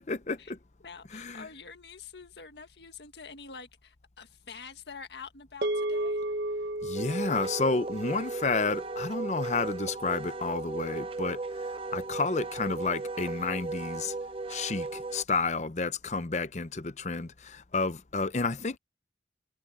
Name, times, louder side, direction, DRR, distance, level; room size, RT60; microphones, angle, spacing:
voice 1, 0.1-0.6 1.1-1.4 6.8-11.4 11.9-14.1 14.5-18.8, left 3 dB, 40° left, 0.7 m, -31 dB
voice 2, 0.8-6.2, left 5 dB, 75° left, 1.7 m, -46 dB
sound 1, 5.6-10.1, right 1 dB, 75° right, 1.2 m, -34 dB
Wind instrument woodwind instrument, 6.9-15.2, right 3 dB, 30° right, 0.6 m, -36 dB
head